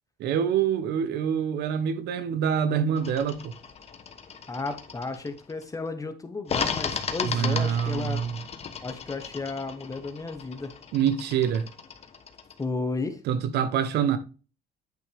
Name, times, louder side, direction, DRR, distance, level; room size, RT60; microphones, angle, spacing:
voice 1, 0.2-3.5 7.2-8.4 10.9-11.7 13.3-14.2, right 8 dB, 80° right, 1.1 m, -25 dB
sound 1, 3.0-5.6 6.4-12.6, left 6 dB, 40° left, 1.1 m, -36 dB
voice 2, 4.5-8.2 8.8-10.8 12.6-13.2, left 3 dB, 20° left, 1.1 m, -33 dB
9.3 x 5.3 x 3.5 m
cardioid pair, 110°, 17 cm